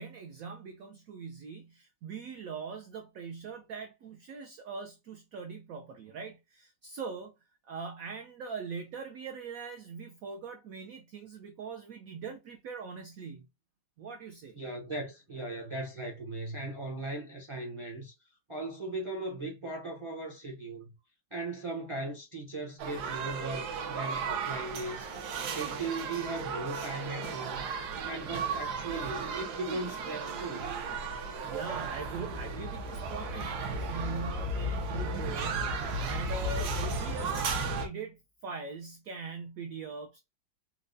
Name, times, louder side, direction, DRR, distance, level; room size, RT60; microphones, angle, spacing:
voice 1, 0.0-7.3 7.7-13.5 14.0-14.6 31.4-40.2, right 5 dB, 80° right, 0.7 m, -42 dB
voice 2, 14.5-18.1 18.5-20.9 21.3-27.6 28.0-30.9, right 2 dB, 35° right, 0.4 m, -38 dB
sound 1, 22.8-37.9, right 3 dB, 65° right, 1.2 m, -35 dB
4.4 x 2.1 x 2.5 m
omnidirectional pair, 2.0 m